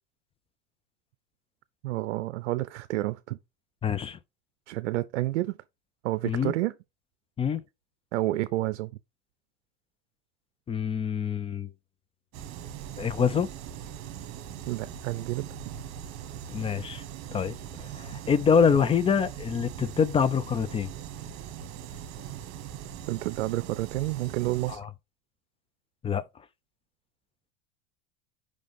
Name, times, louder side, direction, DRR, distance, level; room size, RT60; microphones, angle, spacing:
voice 1, 1.8-3.4 4.7-5.6 6.0-6.7 8.1-8.9 14.7-15.7 23.1-24.8, right 17 dB, 85° right, 0.6 m, -30 dB
voice 2, 3.8-4.2 6.2-6.5 7.4-7.6 10.7-11.7 13.0-13.5 16.5-17.0 17.3-20.9 24.7-24.9 26.0-26.2, left 6 dB, 15° left, 0.4 m, -25 dB
sound 1, 12.3-24.8, right 9 dB, 50° right, 1.4 m, -41 dB
5.1 x 3.8 x 5.1 m
supercardioid pair, 120°, 35 cm